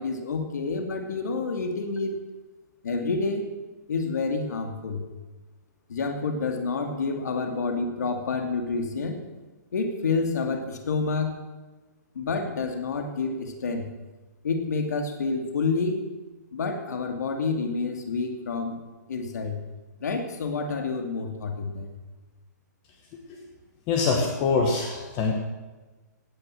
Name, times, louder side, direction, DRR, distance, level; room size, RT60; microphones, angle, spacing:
voice 1, 0.0-2.2 2.8-3.5 3.9-5.1 5.9-9.2 9.7-11.4 12.1-13.9 14.4-16.0 16.5-18.8 19.1-19.6 20.0-21.9, left 4 dB, 65° left, 5 dB, 2.4 m, -28 dB
voice 2, 23.9-25.3, left 4 dB, 20° left, 3 dB, 1.1 m, -24 dB
17.5 x 9.7 x 7.6 m, 1.2 s
hypercardioid pair, 175°, 10 cm